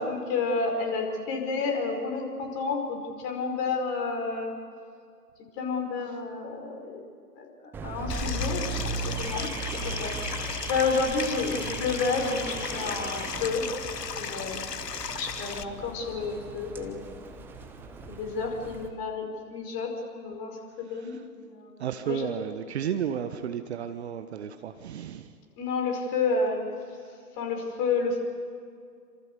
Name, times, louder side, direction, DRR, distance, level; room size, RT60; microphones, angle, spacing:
voice 1, 0.0-4.5 5.6-7.0 7.4-9.5 9.8-13.7 14.2-14.8 15.2-17.1 18.1-22.3 25.6-26.7 27.4-28.2, left 4 dB, 25° left, 2 dB, 5.4 m, -30 dB
Car / Alarm, 7.7-18.9, right 3 dB, 5° right, 0.7 m, -37 dB
Stream, 8.1-15.6, left 6 dB, 75° left, 1.2 m, -36 dB
voice 2, 21.8-25.3, right 9 dB, 40° right, 10 dB, 1.2 m, -33 dB
28.5 x 26.5 x 6.9 m, 2.2 s
figure-of-eight pair, 125°, 49 cm